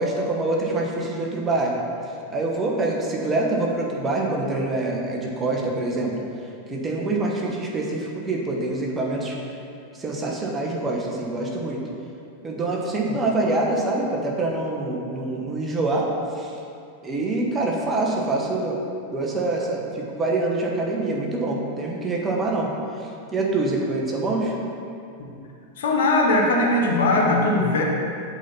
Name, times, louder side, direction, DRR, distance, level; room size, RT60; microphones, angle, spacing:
voice 1, 0.0-1.8 2.3-6.2 6.7-9.4 10.0-11.8 12.4-16.1 16.3-16.5 17.0-18.8 19.1-22.7 23.0-24.6, right 2 dB, 20° right, -1 dB, 1.1 m, -25 dB
voice 2, 25.8-27.8, left 2 dB, 60° left, -1 dB, 1.1 m, -20 dB
8.0 x 4.1 x 5.7 m, 2.6 s
figure-of-eight pair, 90°, 0 cm